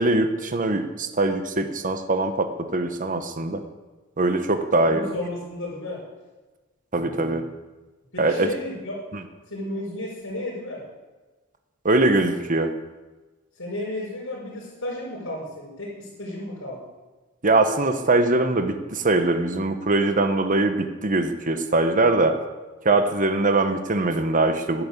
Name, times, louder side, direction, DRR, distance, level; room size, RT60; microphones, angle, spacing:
voice 1, 0.0-3.6 4.2-5.1 6.9-7.4 8.2-8.5 9.1-9.2 11.8-12.7 17.4-22.4 22.8-24.8, right 2 dB, 40° right, 8 dB, 1.2 m, -22 dB
voice 2, 4.8-6.0 6.9-7.5 8.1-8.9 9.5-10.8 13.6-16.8, left 1 dB, 70° left, -9 dB, 5.4 m, -33 dB
11.5 x 11.0 x 8.3 m, 1.2 s
head